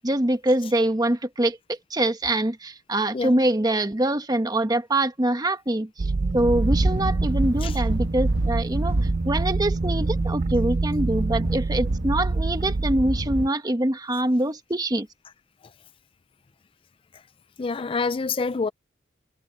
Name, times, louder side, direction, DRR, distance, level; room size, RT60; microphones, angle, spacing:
voice 1, 0.0-15.1, right 1 dB, 20° right, 1.1 m, -24 dB
sound 1, 6.0-13.1, right 3 dB, 40° right, 0.4 m, -26 dB
sound 2, 6.4-13.5, right 1 dB, 70° right, 1.2 m, -29 dB
voice 2, 17.6-18.7, left 4 dB, 30° left, 0.4 m, -27 dB
head